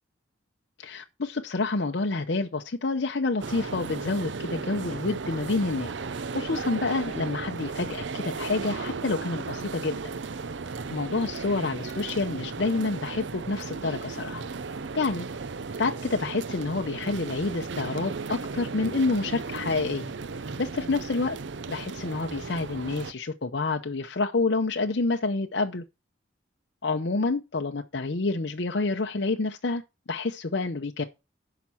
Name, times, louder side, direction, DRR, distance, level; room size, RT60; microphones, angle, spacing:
voice 1, 0.8-5.9 6.3-10.0 10.9-14.4 14.9-15.3 15.8-20.1 20.6-21.4 21.7-25.8 26.8-29.8 30.1-31.0, left 3 dB, 60° left, 0.7 m, -28 dB
sound 1, 3.4-23.1, right 4 dB, 65° right, 0.6 m, -35 dB
10.5 x 5.9 x 5.7 m
head